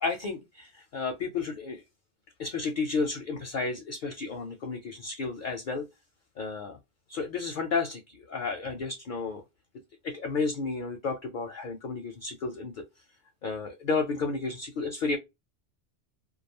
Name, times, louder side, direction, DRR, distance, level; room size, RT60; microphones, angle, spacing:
voice 1, 0.0-1.8 2.4-5.9 6.4-6.8 7.1-9.4 10.0-12.8 13.4-15.2, left 4 dB, 60° left, 0.6 m, -32 dB
2.4 x 2.3 x 2.8 m
omnidirectional pair, 1.1 m